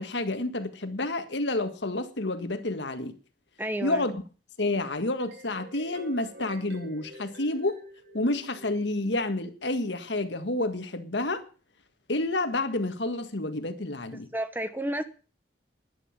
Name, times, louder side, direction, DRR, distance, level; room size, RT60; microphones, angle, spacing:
voice 1, 0.0-3.2 3.8-4.2 4.6-7.8 8.1-11.4 12.1-14.3, left 2 dB, 80° left, 1.7 m, -29 dB
voice 2, 3.6-4.0 14.3-15.0, right 1 dB, 10° right, 1.0 m, -31 dB
sound 1, 5.0-9.3, right 1 dB, 80° right, 5.1 m, -48 dB
11.0 x 11.0 x 7.3 m
head